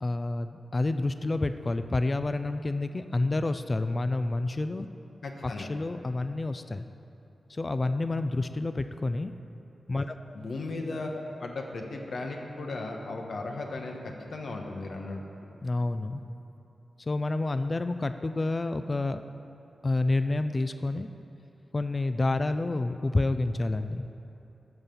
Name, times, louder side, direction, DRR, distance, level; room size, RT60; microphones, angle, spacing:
voice 1, 0.0-4.9 5.4-6.9 7.5-9.3 9.9-10.1 15.6-16.2 17.0-19.2 19.8-21.1 21.7-24.1, left 2 dB, 35° left, 10 dB, 0.4 m, -29 dB
voice 2, 5.2-5.7 10.3-15.2, left 2 dB, 75° left, 1 dB, 1.2 m, -36 dB
13.5 x 5.7 x 6.9 m, 2.9 s
wide cardioid pair, 90°, 0 cm